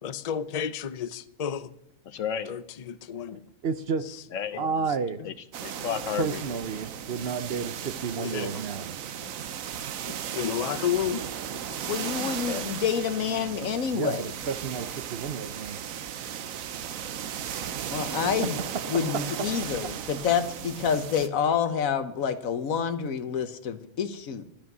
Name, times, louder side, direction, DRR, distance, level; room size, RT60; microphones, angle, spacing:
voice 1, 0.0-1.7 2.5-2.6 2.9-3.4 4.5-4.7 8.2-8.5 9.2-9.3 10.1-11.2 11.7-11.8, left 9 dB, 40° left, 14 dB, 0.6 m, -31 dB
voice 2, 2.0-2.5 4.3-4.6 5.2-5.3 5.6-6.4 12.2-12.7, left 8 dB, 70° left, 13 dB, 1.2 m, -33 dB
voice 3, 3.6-4.1 4.6-5.2 6.2-9.0 13.9-15.8 18.7-19.5 19.8-19.9, right 5 dB, 55° right, 12 dB, 0.9 m, -31 dB
sound 1, 5.5-21.3, right 9 dB, 85° right, 1.2 m, -36 dB
voice 4, 11.9-14.2 17.9-18.6 18.9-24.4, left 7 dB, 90° left, 11 dB, 1.4 m, -28 dB
12.0 x 12.0 x 6.1 m, 0.75 s
omnidirectional pair, 1.4 m